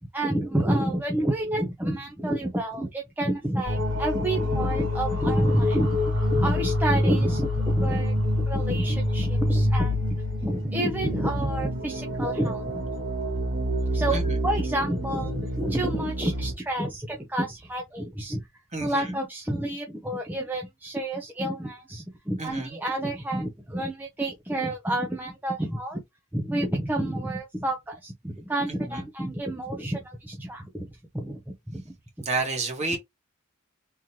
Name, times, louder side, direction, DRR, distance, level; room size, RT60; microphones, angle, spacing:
voice 1, 0.1-12.8 13.9-18.5 18.8-26.0 26.3-30.9 31.1-31.4 31.7-31.9 32.9-33.0, right 1 dB, 10° right, 0.5 m, -29 dB
sound 1, 3.6-16.5, left 1 dB, 60° right, 2.1 m, -26 dB
voice 2, 18.7-19.0 22.4-22.8 32.2-33.0, right 3 dB, 30° right, 1.5 m, -29 dB
3.7 x 3.0 x 2.8 m
head